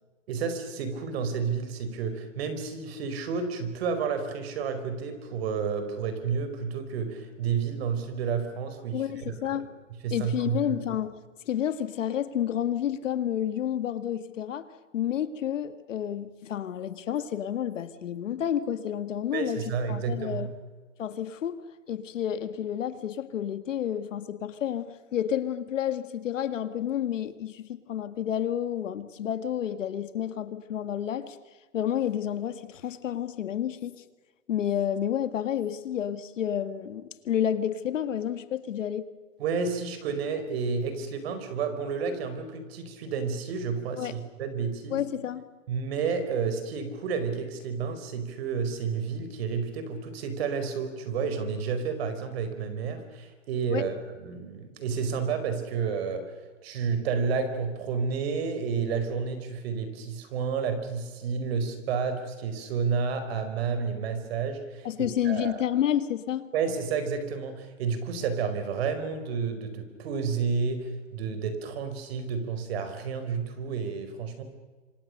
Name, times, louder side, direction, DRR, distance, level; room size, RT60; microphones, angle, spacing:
voice 1, 0.3-9.6 10.0-10.6 19.3-20.5 39.4-45.0 45.7-56.3 56.6-64.9 65.2-65.6 66.5-74.4, right 5 dB, 50° right, 4.9 m, -30 dB
voice 2, 8.9-9.7 10.1-11.1 11.5-14.7 14.9-19.6 19.9-20.5 21.0-31.4 31.7-34.0 34.5-39.1 44.0-44.1 44.9-45.5 53.7-53.9 64.8-66.5, left 10 dB, 70° left, 2.0 m, -30 dB
27.5 x 25.0 x 6.6 m
hypercardioid pair, 150°, 38 cm